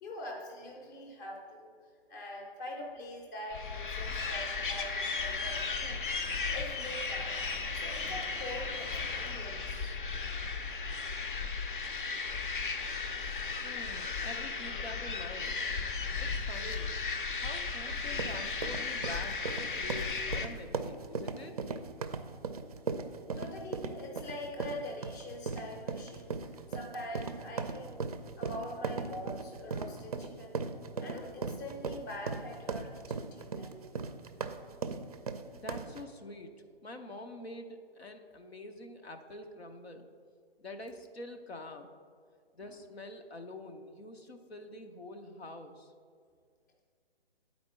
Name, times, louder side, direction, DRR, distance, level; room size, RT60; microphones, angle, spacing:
voice 1, 0.0-7.4 7.7-10.0 23.3-28.0 28.4-30.6 31.0-33.8 42.6-42.8, left 1 dB, 20° left, 0 dB, 0.6 m, -44 dB
sound 1, 3.5-20.5, left 4 dB, 55° left, 0.7 m, -35 dB
voice 2, 13.6-15.6 16.2-16.9 17.4-21.6 35.5-36.5 36.8-40.1 40.6-41.9 42.5-45.9, left 2 dB, 85° left, 5 dB, 0.8 m, -46 dB
sound 2, 18.0-36.0, right 4 dB, 40° right, 0.4 m, -38 dB
9.6 x 4.3 x 4.3 m, 2.1 s
figure-of-eight pair, 140°, 31 cm